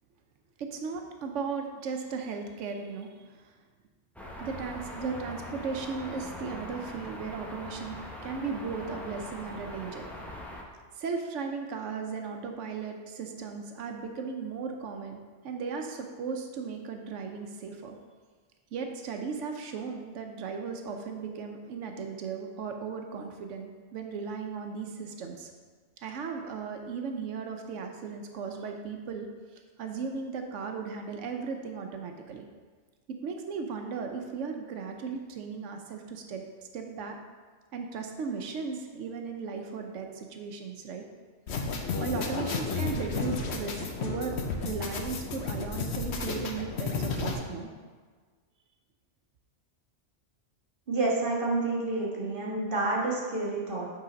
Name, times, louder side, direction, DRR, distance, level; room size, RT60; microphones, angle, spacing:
voice 1, 0.6-3.5 4.4-8.0 8.2-10.1 11.0-18.0 18.7-25.5 26.0-29.3 29.8-32.5 33.2-36.4 36.7-37.2 37.7-41.0 41.8-47.7, right 5 dB, 90° right, 4 dB, 1.0 m, -36 dB
sound 1, 4.2-10.6, left 1 dB, ahead, 0.6 m, -42 dB
sound 2, 41.5-47.3, left 4 dB, 65° left, 1.0 m, -32 dB
voice 2, 50.9-53.8, right 2 dB, 45° right, -4 dB, 1.5 m, -29 dB
8.2 x 3.9 x 5.1 m, 1.5 s
omnidirectional pair, 1.2 m